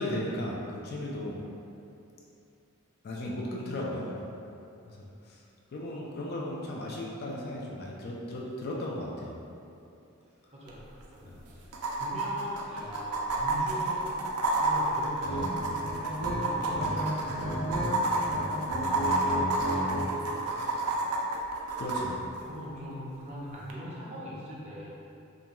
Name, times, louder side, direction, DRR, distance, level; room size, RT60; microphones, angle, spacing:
voice 1, 0.0-1.4 3.0-4.2 4.9-5.4 5.7-9.4 11.2-11.4 21.8-22.2, left 1 dB, 45° left, -3 dB, 0.3 m, -36 dB
voice 2, 10.5-10.8 11.1-11.3 11.6-11.7 11.9-14.2 14.6-21.0 22.3-24.9, equal, 30° right, -6 dB, 0.5 m, -41 dB
sound 1, 10.7-10.8 11.0-11.1 11.7-22.0 23.7-23.8, right 2 dB, 90° right, 0.4 m, -30 dB
sound 2, 15.2-15.4 15.8-16.9 17.2-17.9 18.1-20.1, equal, 65° left, 0.7 m, -34 dB
2.4 x 2.2 x 2.9 m, 2.7 s
head